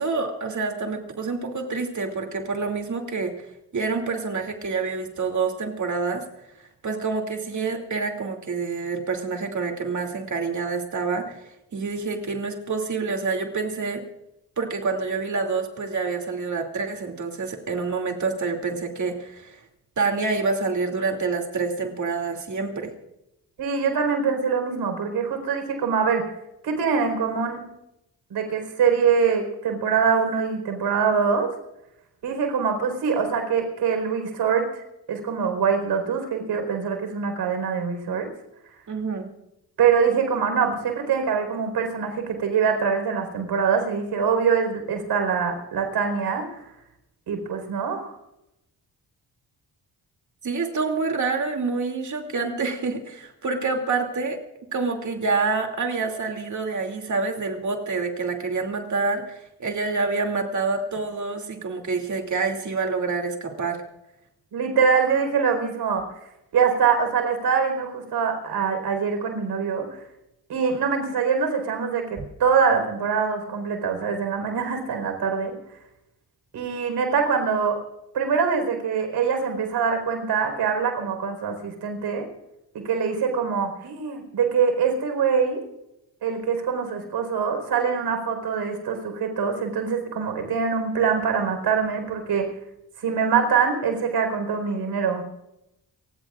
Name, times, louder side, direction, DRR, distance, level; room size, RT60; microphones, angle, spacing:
voice 1, 0.0-3.5 3.7-6.2 6.8-14.0 14.6-19.6 20.0-22.9 38.9-39.3 50.4-54.4 54.7-63.8, right 4 dB, 50° right, 3 dB, 2.7 m, -27 dB
voice 2, 23.6-26.2 26.6-27.6 28.3-31.5 32.2-34.8 35.1-38.3 39.8-46.7 47.3-48.2 64.5-66.0 66.5-69.9 70.5-75.5 76.5-77.8 78.1-82.3 82.7-85.6 86.2-92.5 93.0-95.2, right 6 dB, 80° right, 5 dB, 4.5 m, -24 dB
30.0 x 16.0 x 2.5 m, 0.86 s
cardioid pair, 85°, 39 cm